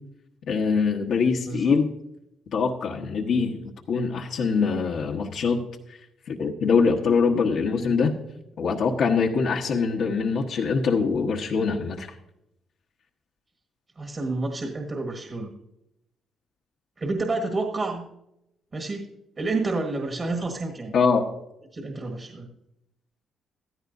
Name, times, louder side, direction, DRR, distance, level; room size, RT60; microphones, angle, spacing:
voice 1, 0.5-1.9 2.5-3.6 3.9-5.6 5.9-6.0 6.3-8.1 8.6-12.1 20.9-21.2, left 5 dB, 70° left, -1 dB, 1.2 m, -23 dB
voice 2, 1.5-1.8 14.0-15.5 17.0-18.0 18.7-19.1 19.4-20.9 21.7-22.5, right 3 dB, 35° right, 3 dB, 1.6 m, -29 dB
15.5 x 13.0 x 2.7 m, 0.83 s
cardioid pair, 90°, 0 cm